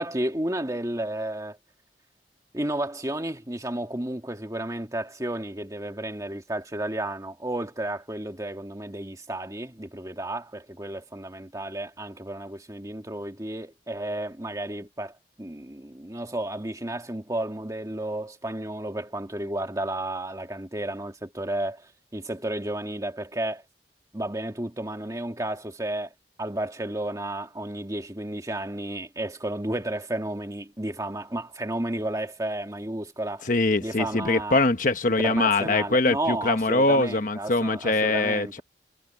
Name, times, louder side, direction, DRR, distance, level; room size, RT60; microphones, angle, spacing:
voice 1, 0.0-1.6 2.5-23.6 24.1-26.1 26.4-33.5 33.8-34.6 35.2-38.6, right 1 dB, 20° right, 1.9 m, -32 dB
voice 2, 33.5-38.6, left 2 dB, 45° left, 1.2 m, -23 dB
head